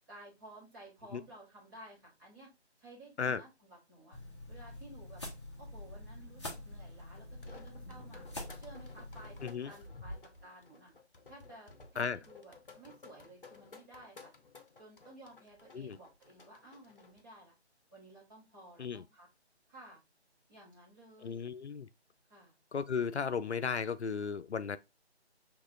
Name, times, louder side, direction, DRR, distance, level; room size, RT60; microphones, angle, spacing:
voice 1, 0.1-2.5 2.8-4.2 4.5-5.2 5.6-8.2 8.5-10.9 11.3-14.3 14.8-17.5 17.9-19.3 19.7-20.0 20.5-21.6 22.3-22.6, right 1 dB, 20° right, 1.6 m, -55 dB
sound 1, 4.1-9.5, left 1 dB, 25° left, 0.8 m, -46 dB
sound 2, 7.2-17.2, left 2 dB, 50° left, 1.0 m, -54 dB
voice 2, 21.2-21.9 22.7-24.8, left 6 dB, 75° left, 0.5 m, -35 dB
6.5 x 2.9 x 2.4 m
figure-of-eight pair, 155°, 34 cm